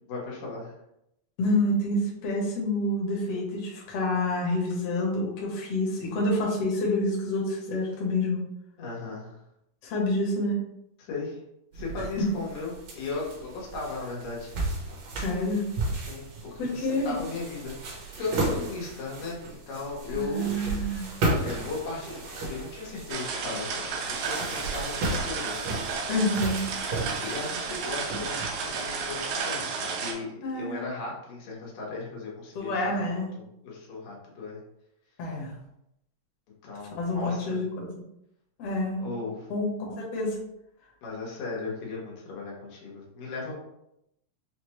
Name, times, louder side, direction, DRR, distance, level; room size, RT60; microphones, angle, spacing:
voice 1, 0.1-0.7 8.8-9.4 11.0-11.4 11.7-14.5 15.9-21.0 21.4-25.6 25.9-26.1 26.9-33.2 33.6-34.6 36.6-37.6 39.0-39.5 41.0-43.6, left 3 dB, 85° left, -4 dB, 3.0 m, -37 dB
voice 2, 1.4-8.4 9.8-10.6 12.2-12.3 15.2-15.6 16.6-17.1 20.1-21.1 26.1-26.6 30.4-30.8 32.6-33.3 35.2-35.5 36.9-37.9 38.6-39.1 39.5-39.7 40.0-40.4, left 1 dB, 60° left, -3 dB, 1.8 m, -28 dB
sound 1, 11.7-29.2, right 2 dB, 65° right, 2.0 m, -34 dB
sound 2, 23.1-30.1, right 5 dB, 85° right, 2.4 m, -32 dB
6.4 x 2.3 x 3.1 m, 0.82 s
omnidirectional pair, 3.8 m